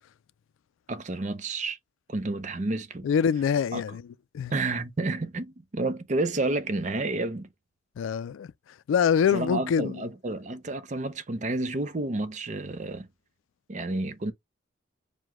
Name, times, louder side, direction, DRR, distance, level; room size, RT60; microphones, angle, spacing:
voice 1, 0.9-1.8 2.1-3.1 3.7-3.8 4.5-7.5 9.3-13.1 13.7-14.3, right 2 dB, 40° right, 0.5 m, -30 dB
voice 2, 3.0-4.0 4.3-4.5 8.0-8.5 8.9-10.1, left 7 dB, 85° left, 0.3 m, -24 dB
4.7 x 2.1 x 3.6 m
head